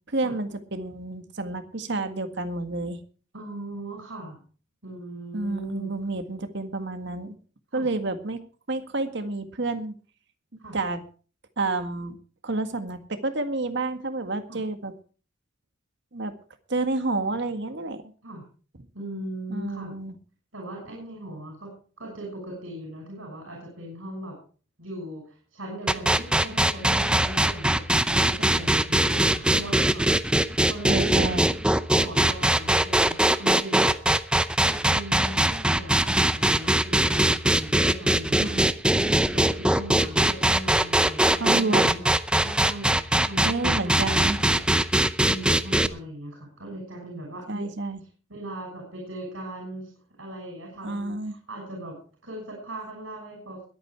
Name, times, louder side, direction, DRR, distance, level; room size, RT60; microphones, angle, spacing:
voice 1, 0.1-3.0 5.3-7.4 7.7-8.4 8.7-9.9 10.5-11.0 11.6-12.1 12.4-14.9 16.1-16.3 16.7-18.1 19.5-20.1 30.9-31.5 34.7-34.8 38.4-38.7 41.3-42.0 43.4-44.4 45.1-45.2 47.5-48.0 50.8-51.3, right 2 dB, 60° right, 8 dB, 1.9 m, -29 dB
voice 2, 3.3-4.4 4.8-5.9 7.7-7.9 10.6-10.8 14.5-14.6 18.2-18.4 18.9-19.9 20.5-24.4 24.8-27.8 28.1-31.3 31.9-34.0 34.6-38.5 38.9-42.1 42.3-44.6 45.2-47.7 48.3-49.9 50.2-51.9 52.2-53.6, right 1 dB, 85° right, 0 dB, 6.5 m, -38 dB
sound 1, 25.9-45.9, right 1 dB, 5° right, 0.6 m, -21 dB
21.5 x 8.9 x 4.7 m, 0.40 s
head